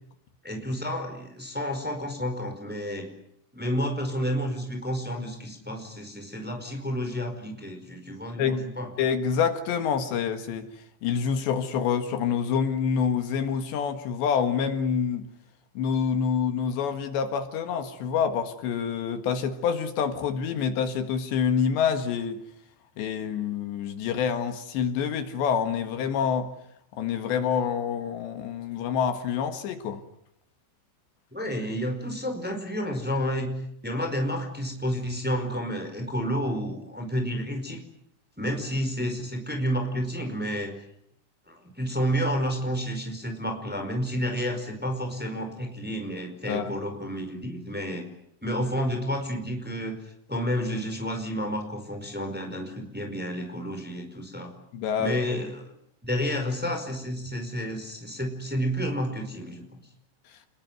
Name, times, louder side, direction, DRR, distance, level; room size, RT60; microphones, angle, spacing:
voice 1, 0.4-3.1 3.5-8.9 31.3-33.6 33.8-37.8 38.4-40.7 41.5-48.0 48.4-50.0 50.3-54.5 55.0-55.6 56.0-59.6, equal, ahead, 4 dB, 4.3 m, -30 dB
voice 2, 9.0-10.7 11.0-15.3 15.8-22.4 23.0-26.5 27.0-30.0 46.5-46.7 54.7-55.2 60.3-60.4, left 7 dB, 70° left, 8 dB, 3.8 m, -27 dB
29.0 x 21.5 x 9.6 m, 0.74 s
omnidirectional pair, 5.3 m